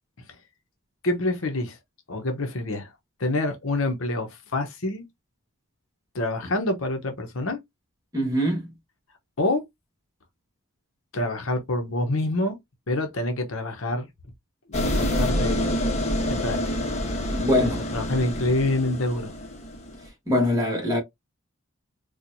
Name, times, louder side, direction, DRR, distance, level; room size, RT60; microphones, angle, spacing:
voice 1, 1.0-1.8 2.1-2.9 3.2-5.1 6.1-7.6 9.4-9.6 11.1-12.6 12.9-14.1 14.7-15.7 16.3-16.7 17.6-19.3, left 2 dB, 60° left, 0.9 m, -27 dB
voice 2, 8.1-8.6 17.3-17.8 20.3-21.0, left 1 dB, 15° right, 1.5 m, -23 dB
sound 1, 14.7-20.1, left 1 dB, 30° left, 1.0 m, -27 dB
4.4 x 2.3 x 2.6 m
head